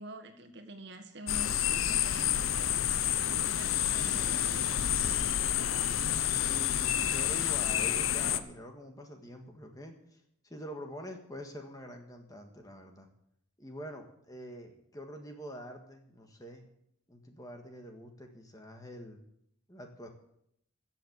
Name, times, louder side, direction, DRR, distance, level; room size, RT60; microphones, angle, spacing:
voice 1, 0.0-2.7 3.2-5.3, right 1 dB, 55° right, 5 dB, 1.6 m, -47 dB
sound 1, 1.3-8.4, left 10 dB, 80° left, 0.7 m, -29 dB
voice 2, 6.3-13.1 13.6-16.7 17.1-19.2 19.7-20.1, equal, 15° left, 4 dB, 1.6 m, -45 dB
15.0 x 7.5 x 8.1 m, 0.74 s
head